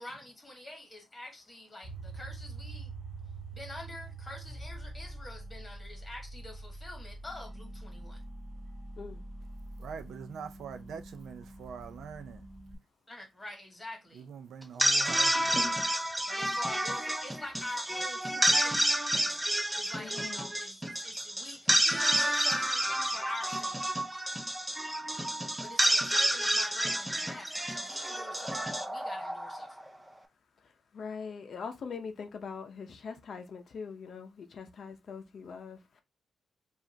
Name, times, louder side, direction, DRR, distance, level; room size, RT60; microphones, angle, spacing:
voice 1, 0.0-2.9 3.5-8.2 13.1-14.3 14.8-14.9 16.2-23.8 25.6-29.9, left 2 dB, 20° left, 1.6 m, -46 dB
sound 1, 1.8-12.7, right 2 dB, 30° right, 1.7 m, -45 dB
voice 2, 9.8-12.5 14.1-15.8, right 7 dB, 85° right, 0.5 m, -44 dB
sound 2, 14.6-29.9, right 1 dB, 10° right, 0.5 m, -29 dB
voice 3, 20.0-20.4 30.9-35.8, left 5 dB, 55° left, 0.6 m, -42 dB
4.9 x 2.4 x 2.7 m
wide cardioid pair, 145°, 0 cm